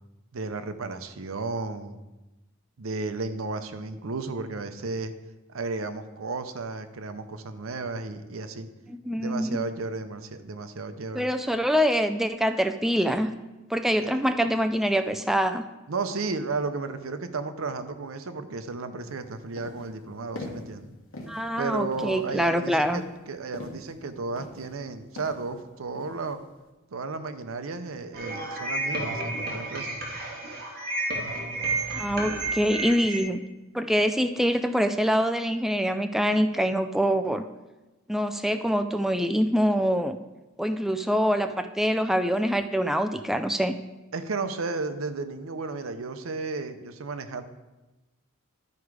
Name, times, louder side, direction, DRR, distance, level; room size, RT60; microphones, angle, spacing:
voice 1, 0.3-2.0 2.8-5.1 5.5-8.7 9.1-11.3 14.0-14.2 15.9-20.9 21.6-26.4 26.9-30.0 44.1-47.4, right 3 dB, 90° right, 10 dB, 0.7 m, -33 dB
voice 2, 8.9-9.6 11.1-13.3 13.7-15.6 21.3-23.0 31.9-33.4 33.7-37.4 38.1-40.2 40.6-43.8, equal, ahead, 8 dB, 0.3 m, -25 dB
sound 1, 19.0-19.1 19.6-19.9 20.3-20.7 21.1-21.5 21.9-22.3 22.7-23.9 24.4-24.8 25.2-25.5 25.9-26.3, left 1 dB, 70° left, 1.5 m, -42 dB
sound 2, 28.1-33.2, right 2 dB, 50° right, 1.7 m, -31 dB
12.0 x 4.8 x 4.7 m, 1.1 s
head